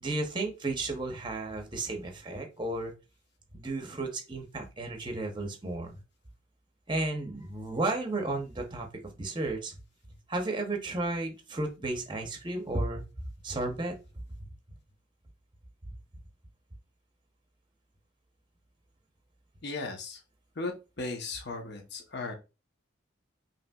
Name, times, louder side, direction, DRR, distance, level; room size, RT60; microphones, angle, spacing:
voice 1, 0.0-2.9 3.5-6.0 6.9-9.8 10.3-13.0 13.4-13.9 14.4-14.5 15.8-15.9, right 2 dB, 25° right, 4 dB, 0.7 m, -33 dB
voice 2, 19.6-20.2 20.6-22.3, left 3 dB, 55° left, 3 dB, 0.8 m, -36 dB
5.3 x 2.9 x 2.3 m, 0.29 s
head